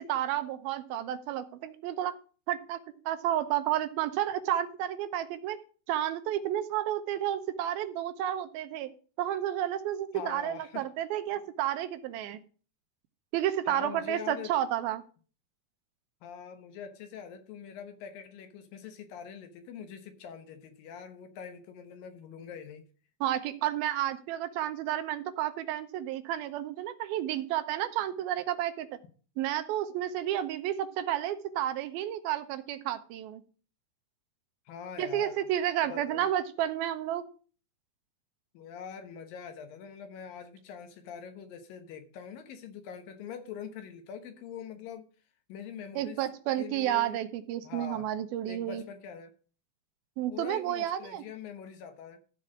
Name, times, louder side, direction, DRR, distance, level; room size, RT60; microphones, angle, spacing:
voice 1, 0.0-2.2 2.5-2.8 3.1-5.6 5.9-8.9 9.2-12.4 13.3-15.0 23.2-28.9 29.4-33.4 35.0-37.2 46.0-48.8 50.2-51.2, right 12 dB, 85° right, 2.7 m, -31 dB
voice 2, 10.1-10.9 13.7-14.5 16.2-22.9 34.7-35.5 35.9-36.3 38.5-45.1 45.5-46.2 46.6-47.2 47.6-48.1 48.5-49.4 50.3-52.2, left 7 dB, 75° left, 2.8 m, -43 dB
13.5 x 4.7 x 6.0 m
omnidirectional pair, 4.3 m